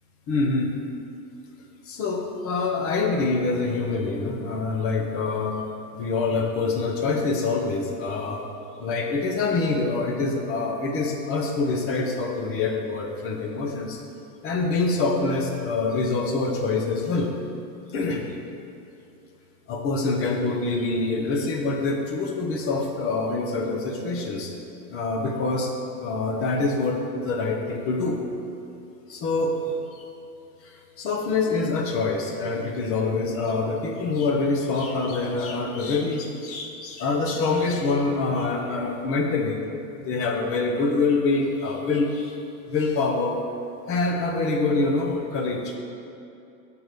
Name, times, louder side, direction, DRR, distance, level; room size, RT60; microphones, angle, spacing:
voice 1, 0.3-0.7 1.9-5.6 5.9-8.4 8.8-14.0 14.4-17.3 17.9-18.2 19.7-24.5 24.9-25.7 26.0-28.2 29.1-30.0 30.6-39.6 40.0-42.4 42.7-43.4 43.8-45.7, left 3 dB, 30° left, 2 dB, 0.8 m, -25 dB
6.4 x 4.8 x 5.2 m, 2.6 s
hypercardioid pair, 120°, 48 cm